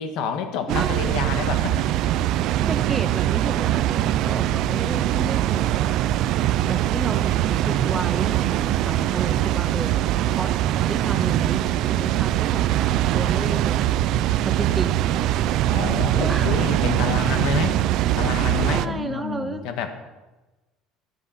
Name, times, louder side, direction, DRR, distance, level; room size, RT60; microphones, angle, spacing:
voice 1, 0.0-1.9 2.6-2.8 9.1-9.2 14.7-14.8 15.7-17.8 18.2-19.9, left 7 dB, 55° left, 7 dB, 1.7 m, -29 dB
voice 2, 0.7-1.2 2.7-5.9 6.6-10.5 10.9-14.1 14.4-15.2 16.1-16.5 18.7-19.6, right 3 dB, 10° right, 9 dB, 0.7 m, -32 dB
Water, 0.7-18.9, right 12 dB, 50° right, 0.5 m, -22 dB
14.0 x 12.0 x 5.8 m, 1.1 s
cardioid pair, 175°, 0 cm